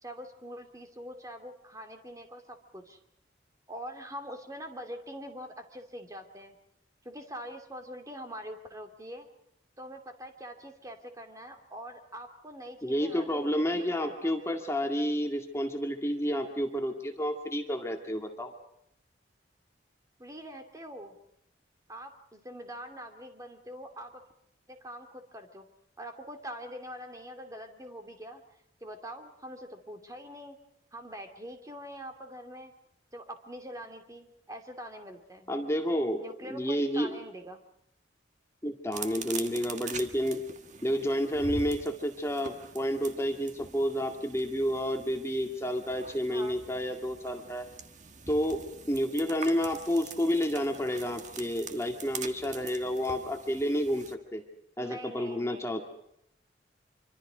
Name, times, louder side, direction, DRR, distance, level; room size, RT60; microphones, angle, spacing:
voice 1, 0.0-3.0 3.7-6.6 7.0-9.3 9.8-14.4 20.2-21.2 21.9-24.2 24.7-25.6 26.0-28.4 28.8-30.6 30.9-32.7 33.1-35.5 36.2-37.6 46.3-46.6 54.8-55.7, equal, 20° right, 5 dB, 2.6 m, -44 dB
voice 2, 12.8-18.5 35.5-37.1 38.6-40.4 40.8-47.6 48.3-48.6 48.9-54.4 54.8-55.8, equal, 15° left, 3 dB, 2.0 m, -30 dB
sound 1, 38.9-54.1, right 5 dB, 40° right, 1.5 m, -44 dB
25.5 x 25.0 x 5.0 m, 0.74 s
head